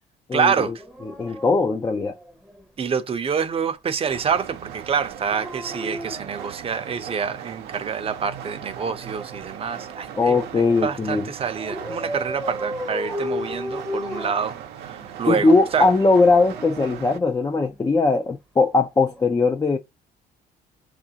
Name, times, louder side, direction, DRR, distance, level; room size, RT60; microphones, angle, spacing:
voice 1, 0.3-0.7 2.8-15.9, right 6 dB, 35° right, 0.7 m, -27 dB
Dog, 0.8-2.6 5.1-7.5 8.8-10.4 11.6-15.1 16.1-17.8 19.0-19.2, left 1 dB, ahead, 0.8 m, -35 dB
voice 2, 1.2-2.2 10.2-11.2 15.3-19.8, left 3 dB, 20° left, 0.5 m, -19 dB
sound 1, 4.1-17.2, right 9 dB, 80° right, 0.7 m, -38 dB
7.0 x 2.5 x 2.8 m
cardioid pair, 110°, 17 cm